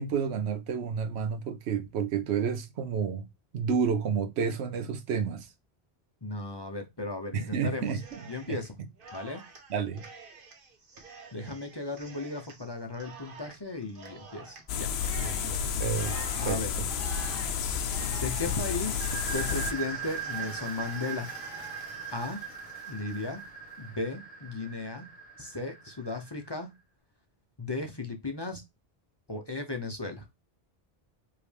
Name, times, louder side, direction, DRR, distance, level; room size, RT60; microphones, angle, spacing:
voice 1, 0.0-3.3 3.5-5.5 7.3-8.0 8.5-8.6 9.7-10.0 15.8-16.8, right 6 dB, 85° right, 1.0 m, -30 dB
voice 2, 6.2-8.0 8.3-8.8 9.1-9.4 11.3-15.6 16.4-16.7 18.1-21.6 22.1-22.4 22.9-23.4 23.8-25.1 25.4-26.7 27.6-28.6 29.3-30.3, left 3 dB, 30° left, 0.6 m, -36 dB
Cheering, 7.8-8.7 9.0-23.5, right 4 dB, 60° right, 1.1 m, -48 dB
sound 1, 14.7-19.7, left 7 dB, 80° left, 0.8 m, -31 dB
sound 2, 19.0-26.5, right 6 dB, 10° left, 1.0 m, -40 dB
5.0 x 2.9 x 3.2 m
omnidirectional pair, 1.1 m